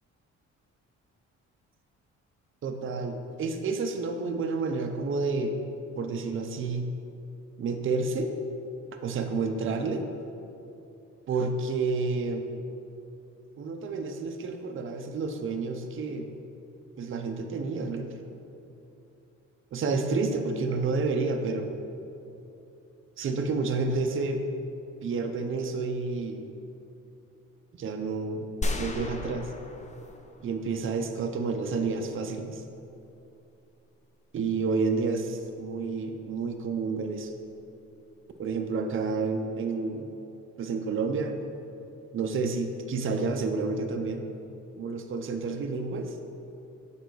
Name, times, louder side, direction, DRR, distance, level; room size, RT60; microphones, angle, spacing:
voice 1, 2.6-5.5 6.0-6.9 7.6-8.3 9.0-10.1 11.3-12.6 13.6-16.3 17.0-18.2 19.7-21.7 23.2-24.4 25.0-26.5 27.8-28.5 28.8-29.5 30.4-32.6 34.3-37.3 38.4-40.1 40.6-41.3 42.1-44.2 44.8-46.1, right 4 dB, 45° right, 5 dB, 0.6 m, -30 dB
sound 1, 28.6-30.9, left 1 dB, 25° left, 0.6 m, -34 dB
6.8 x 5.1 x 4.6 m, 2.8 s
cardioid pair, 90°, 30 cm